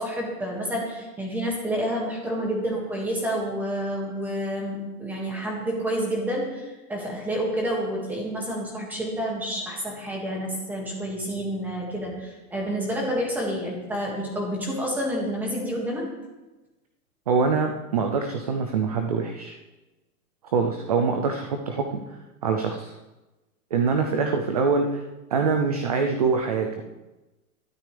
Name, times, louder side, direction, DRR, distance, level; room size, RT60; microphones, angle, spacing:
voice 1, 0.0-16.1, equal, 5° right, -2 dB, 2.0 m, -29 dB
voice 2, 17.3-19.6 20.5-22.0 22.4-22.9 23.7-25.0 25.3-26.7, right 5 dB, 25° right, 5 dB, 0.5 m, -24 dB
19.0 x 13.0 x 3.4 m, 1.1 s
supercardioid pair, 175°, 45 cm